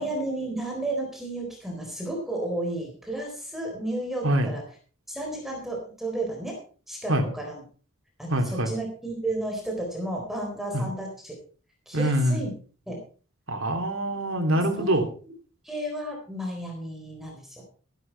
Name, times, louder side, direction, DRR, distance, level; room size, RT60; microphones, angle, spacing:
voice 1, 0.0-4.6 5.1-6.6 6.9-7.6 8.2-11.4 11.9-12.5 12.9-13.0 14.5-14.9 15.6-17.6, right 1 dB, ahead, 0 dB, 4.0 m, -32 dB
voice 2, 8.3-8.7 10.7-10.9 11.9-12.4 13.5-15.0, right 1 dB, 70° right, 4 dB, 3.0 m, -24 dB
14.5 x 11.0 x 4.6 m, 0.39 s
head